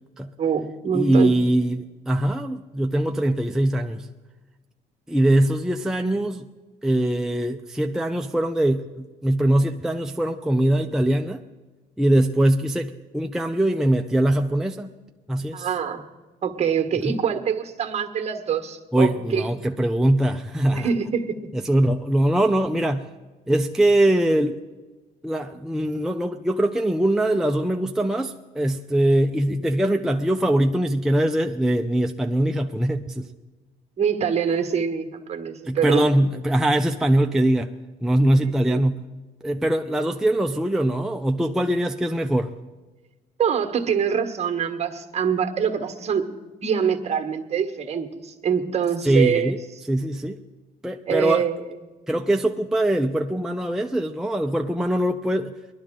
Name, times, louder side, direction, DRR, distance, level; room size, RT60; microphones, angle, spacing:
voice 1, 0.4-1.3 15.5-16.1 16.4-19.5 20.7-21.5 34.0-36.1 38.4-38.8 43.4-46.3 46.6-49.5 51.1-51.6, right 7 dB, 40° right, 6 dB, 1.4 m, -25 dB
voice 2, 0.9-4.1 5.1-6.4 6.8-11.4 12.0-14.9 15.3-15.7 17.1-17.2 18.9-20.9 21.5-23.1 23.5-24.6 25.2-33.3 35.7-37.7 38.0-39.0 39.4-42.5 49.0-49.6 49.9-50.4 50.8-51.5 52.1-55.5, right 1 dB, 5° right, 4 dB, 0.5 m, -22 dB
20.5 x 12.0 x 3.7 m, 1.2 s
cardioid pair, 110°, 17 cm